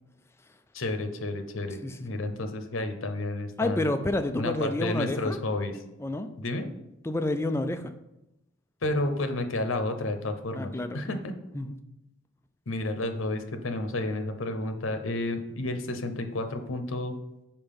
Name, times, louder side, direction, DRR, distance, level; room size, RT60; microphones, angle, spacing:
voice 1, 0.7-3.9 4.4-5.8 6.4-6.7 8.8-11.3 12.7-17.2, left 2 dB, 75° left, 7 dB, 0.8 m, -31 dB
voice 2, 1.8-2.2 3.6-5.4 6.0-6.3 7.0-7.9 10.5-11.1 11.5-11.8, left 1 dB, 10° left, 8 dB, 0.3 m, -29 dB
5.4 x 4.5 x 5.3 m, 0.90 s
head